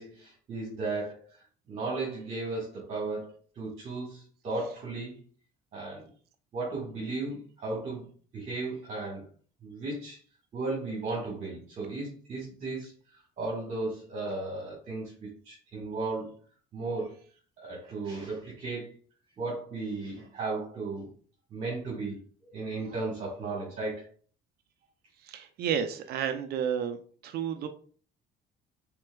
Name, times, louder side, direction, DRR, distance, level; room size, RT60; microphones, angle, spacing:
voice 1, 0.0-5.2 5.7-6.1 6.5-8.1 8.3-9.2 9.6-10.2 10.5-16.3 16.7-17.2 17.6-18.9 19.4-21.1 21.5-24.1, right 3 dB, 45° right, -4 dB, 1.7 m, -35 dB
voice 2, 25.2-27.0 27.2-27.7, right 8 dB, 70° right, 9 dB, 0.5 m, -31 dB
4.4 x 3.7 x 2.3 m, 0.43 s
cardioid pair, 110°, 17 cm